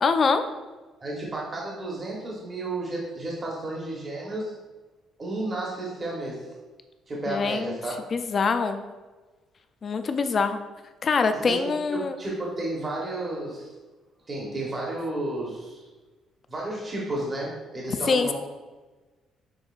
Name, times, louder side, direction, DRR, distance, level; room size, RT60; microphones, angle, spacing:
voice 1, 0.0-0.4 7.3-7.8 8.1-8.8 9.8-10.6 11.0-12.1 18.1-18.3, left 4 dB, 35° left, 9 dB, 0.3 m, -24 dB
voice 2, 1.0-4.5 5.2-6.5 7.1-8.0 11.3-13.7 14.3-15.9 16.5-18.3, right 2 dB, 30° right, -3 dB, 0.9 m, -32 dB
6.1 x 3.6 x 2.3 m, 1.2 s
cardioid pair, 125°, 0 cm